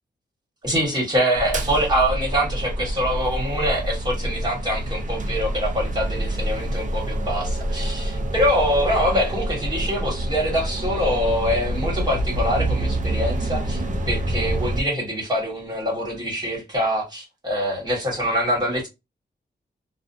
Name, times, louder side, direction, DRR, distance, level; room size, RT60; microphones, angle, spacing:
voice 1, 0.6-18.9, equal, 25° right, 1.3 m, -24 dB
sound 1, 1.3-14.8, right 1 dB, 45° right, 0.4 m, -27 dB
2.5 x 2.1 x 2.6 m
wide cardioid pair, 170°, 18 cm